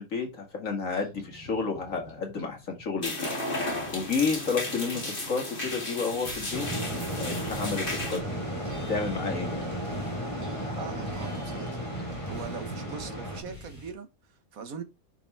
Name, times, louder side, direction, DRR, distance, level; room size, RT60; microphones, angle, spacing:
voice 1, 0.0-3.1 3.9-6.7 7.2-8.2 8.9-9.6, left 5 dB, 70° left, 2.5 m, -31 dB
sound 1, 0.9-5.3 5.7-13.9, left 1 dB, 10° right, 2.9 m, -48 dB
sound 2, 3.0-8.2, left 1 dB, 40° left, 2.9 m, -34 dB
sound 3, 6.5-13.4, equal, 20° left, 3.7 m, -34 dB
voice 2, 10.7-11.8 12.3-14.8, right 5 dB, 90° right, 1.7 m, -41 dB
10.0 x 5.6 x 3.5 m
omnidirectional pair, 1.4 m